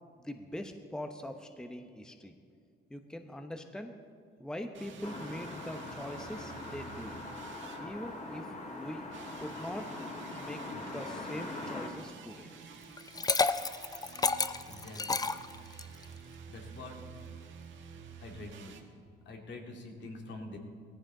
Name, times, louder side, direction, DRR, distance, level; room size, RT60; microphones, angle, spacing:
voice 1, 0.2-2.3 2.9-3.9 4.4-7.2 7.8-9.1 9.4-9.9 10.4-10.7 10.9-12.5, left 1 dB, 5° left, 6 dB, 0.9 m, -42 dB
sound 1, 4.7-8.5 9.1-18.8, right 6 dB, 70° right, 1.4 m, -51 dB
sound 2, 5.0-11.9, left 2 dB, 35° left, 2.5 m, -42 dB
Liquid, 13.0-16.0, left 4 dB, 20° left, 0.5 m, -30 dB
voice 2, 14.7-15.2 16.5-17.0 18.2-18.8 19.3-20.6, left 2 dB, 65° left, 2 dB, 2.4 m, -45 dB
17.5 x 14.5 x 3.8 m, 2.2 s
cardioid pair, 90°, 20 cm